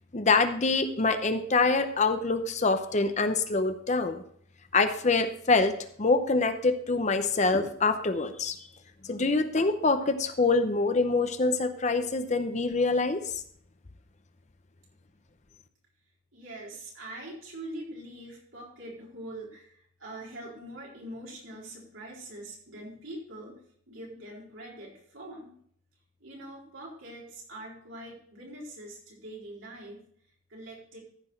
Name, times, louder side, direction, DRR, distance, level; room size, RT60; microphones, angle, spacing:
voice 1, 0.1-4.2 4.7-5.7 6.0-8.6 9.1-13.2, left 3 dB, 35° left, 9 dB, 0.7 m, -25 dB
voice 2, 16.3-23.5 23.9-25.5 26.2-30.0 30.5-31.0, right 1 dB, 75° right, -4 dB, 4.3 m, -43 dB
14.0 x 6.0 x 4.5 m, 0.63 s
head